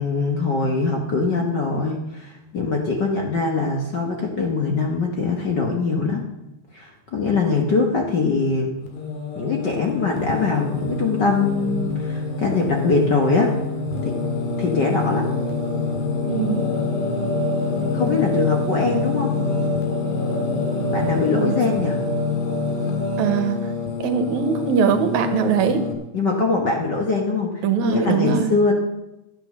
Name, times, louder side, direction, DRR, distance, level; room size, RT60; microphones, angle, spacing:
voice 1, 0.0-6.2 6.7-8.7 9.3-13.5 14.0-14.2 14.6-15.3 17.9-19.3 20.9-22.0 26.1-28.7, left 4 dB, 50° left, 1 dB, 1.4 m, -22 dB
Singing, 8.8-25.9, left 3 dB, 75° left, 3.3 m, -25 dB
voice 2, 16.3-16.6 21.3-21.6 23.2-23.6 24.0-25.8 27.6-28.5, right 7 dB, 75° right, 8 dB, 2.4 m, -21 dB
13.0 x 8.8 x 6.5 m, 0.93 s
omnidirectional pair, 3.4 m